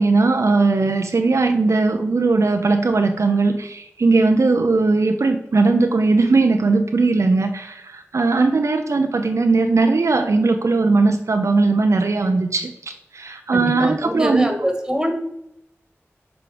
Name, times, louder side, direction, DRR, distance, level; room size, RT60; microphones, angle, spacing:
voice 1, 0.0-14.5, right 3 dB, 75° right, 6 dB, 0.6 m, -18 dB
voice 2, 13.5-15.1, equal, 10° right, 4 dB, 1.7 m, -23 dB
6.8 x 4.8 x 5.1 m, 0.79 s
wide cardioid pair, 50°, 5 cm